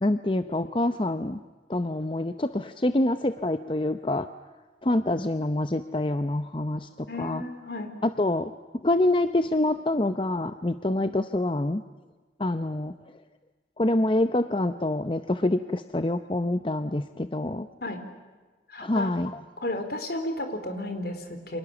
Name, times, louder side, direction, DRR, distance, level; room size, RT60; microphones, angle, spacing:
voice 1, 0.0-1.4 1.7-4.3 4.8-7.4 8.0-8.5 8.8-11.8 12.4-12.9 13.8-17.7 18.8-19.3, left 1 dB, 30° left, 10 dB, 0.7 m, -26 dB
voice 2, 7.1-7.9 17.8-18.0 18.7-19.2 19.6-21.6, left 1 dB, 60° left, 7 dB, 3.9 m, -33 dB
29.5 x 26.5 x 7.1 m, 1.3 s
head